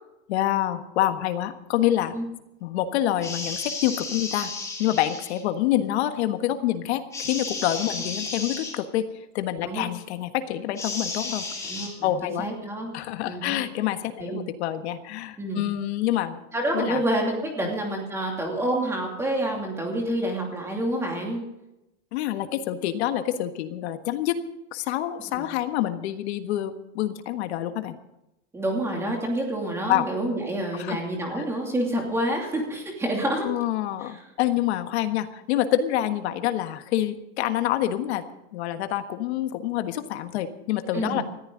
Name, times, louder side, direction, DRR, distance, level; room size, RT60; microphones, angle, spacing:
voice 1, 0.3-2.2 2.6-4.5 4.8-9.0 9.3-11.4 12.0-12.5 12.9-16.4 16.7-17.0 22.1-24.4 24.7-28.0 29.9-30.1 30.8-31.0 31.4-31.5 33.4-38.2 38.5-41.2, left 12 dB, 60° left, 9 dB, 1.5 m, -27 dB
sound 1, 3.2-5.4 7.1-8.8 10.8-11.9, left 3 dB, 10° left, 2.7 m, -33 dB
voice 2, 11.7-12.9 13.3-13.6 14.2-14.4 15.4-15.6 16.5-21.4 25.3-25.4 28.5-33.5 34.0-34.2 40.9-41.2, right 1 dB, 5° right, 0 dB, 2.7 m, -28 dB
20.0 x 14.5 x 3.9 m, 0.91 s
supercardioid pair, 180°, 37 cm